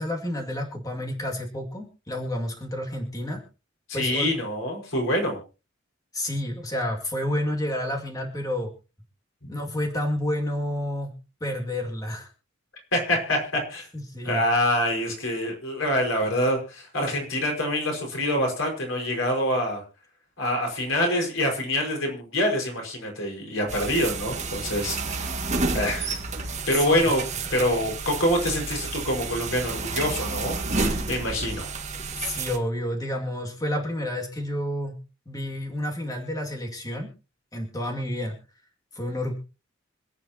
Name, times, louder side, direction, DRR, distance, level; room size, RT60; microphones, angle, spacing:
voice 1, 0.0-3.4 3.9-4.3 6.1-8.7 9.5-11.1 11.4-12.3 13.9-14.4 26.7-27.0 32.2-35.0 35.3-37.1 37.5-38.4 38.9-39.3, left 1 dB, 20° left, 1 dB, 2.3 m, -30 dB
voice 2, 3.9-5.4 12.9-13.9 14.2-19.8 20.4-26.2 26.7-27.2 27.5-31.7, left 1 dB, 80° left, 1 dB, 5.3 m, -26 dB
sound 1, 23.7-32.6, right 3 dB, 35° right, 1.9 m, -30 dB
26.5 x 9.0 x 2.9 m, 0.32 s
head